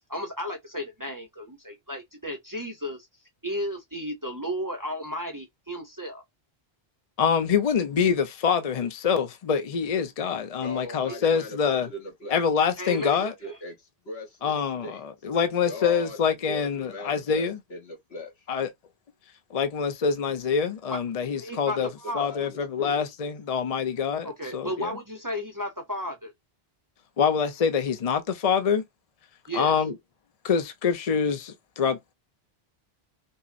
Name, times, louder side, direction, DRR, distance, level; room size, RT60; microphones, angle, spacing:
voice 1, 0.1-3.1 3.4-6.2 11.1-11.2 12.8-13.6 21.4-22.2 24.2-26.3 29.5-29.8, equal, 20° right, 0.6 m, -34 dB
voice 2, 7.2-11.9 12.3-13.3 14.4-17.6 18.5-18.7 19.5-21.9 22.1-24.9 27.2-28.8 29.5-29.9 30.4-32.1, left 6 dB, 45° left, 0.5 m, -25 dB
voice 3, 10.6-12.4 13.2-15.0 15.7-16.2 16.5-18.5 21.8-23.0, left 1 dB, 80° left, 1.5 m, -40 dB
5.4 x 2.0 x 2.5 m
omnidirectional pair, 1.1 m